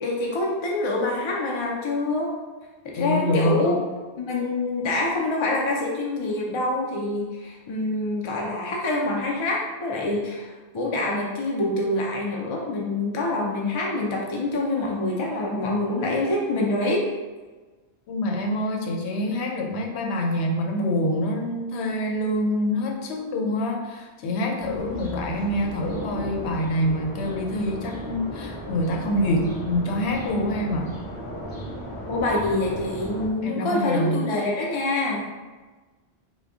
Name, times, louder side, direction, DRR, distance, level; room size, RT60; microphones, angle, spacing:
voice 1, 0.0-2.3 2.8-3.8 4.2-17.0 32.1-35.2, left 2 dB, 50° left, -2 dB, 0.3 m, -26 dB
voice 2, 2.9-3.8 18.1-31.0 33.4-34.2, left 1 dB, 80° left, 1 dB, 0.9 m, -26 dB
sound 1, 24.6-33.3, equal, 25° left, 0.7 m, -36 dB
3.6 x 2.2 x 3.6 m, 1.3 s
omnidirectional pair, 1.1 m